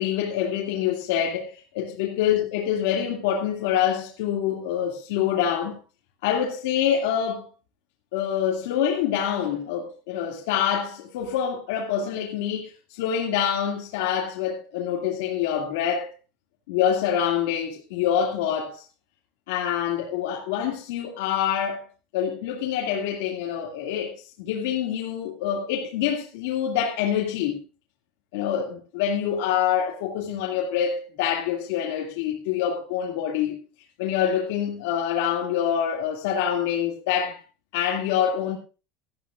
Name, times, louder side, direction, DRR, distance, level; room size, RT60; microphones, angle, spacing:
voice 1, 0.0-5.8 6.2-7.4 8.1-16.1 16.7-18.8 19.5-21.8 22.1-27.6 28.3-33.6 34.0-37.4 37.7-38.6, left 9 dB, 80° left, 2.4 m, -26 dB
18.5 x 13.0 x 2.5 m
cardioid pair, 170°, 0 cm